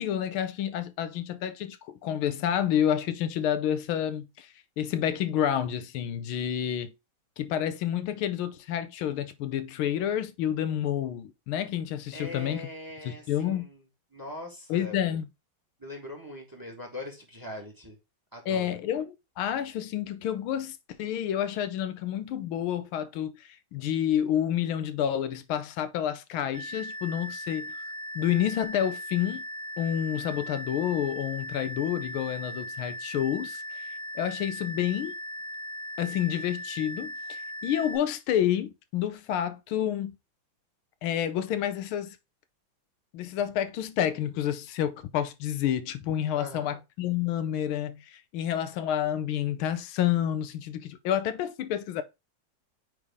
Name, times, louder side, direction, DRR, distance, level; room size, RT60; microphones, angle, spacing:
voice 1, 0.0-6.9 7.4-12.7 13.0-13.7 14.7-15.2 18.5-27.7 28.1-29.5 29.8-35.1 36.0-40.2 41.0-42.2 43.1-52.0, left 10 dB, 90° left, 1.5 m, -29 dB
voice 2, 12.1-13.8 14.1-15.2 15.8-18.0 18.3-18.8 46.3-46.8, left 2 dB, 10° right, 1.5 m, -41 dB
sound 1, 26.5-38.0, equal, 45° right, 2.3 m, -38 dB
8.4 x 3.5 x 3.6 m
omnidirectional pair, 2.3 m